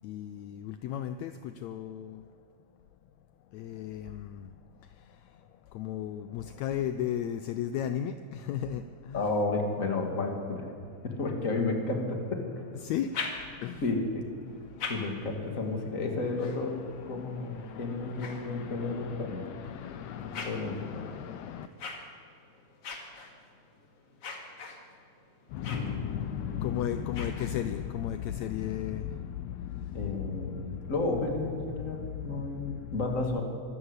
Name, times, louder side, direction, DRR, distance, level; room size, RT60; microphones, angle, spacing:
voice 1, 0.0-2.4 3.4-9.3 10.8-11.3 12.3-21.7 25.5-33.4, left 10 dB, 75° left, 10 dB, 1.8 m, -37 dB
voice 2, 9.1-10.7 11.0-12.6 13.8-14.3 14.9-16.8 17.1-19.5 20.1-21.0 25.6-26.8 29.9-33.4, left 3 dB, 30° left, 3 dB, 2.5 m, -32 dB
sound 1, 12.9-13.9 14.5-19.1 19.7-27.9, left 4 dB, 50° left, 2.9 m, -44 dB
24.5 x 13.5 x 8.2 m, 2.3 s
omnidirectional pair, 3.4 m